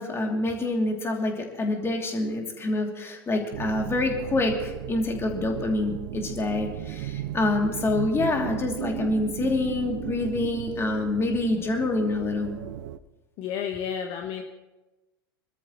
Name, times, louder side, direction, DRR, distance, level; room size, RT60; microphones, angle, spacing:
voice 1, 0.0-12.5, left 2 dB, 20° left, 1 dB, 2.9 m, -26 dB
sound 1, 3.5-13.0, right 12 dB, 55° right, 0.7 m, -36 dB
voice 2, 13.4-14.4, left 8 dB, 45° left, 4 dB, 1.2 m, -31 dB
26.0 x 13.0 x 3.1 m, 1.1 s
figure-of-eight pair, 85°, 12 cm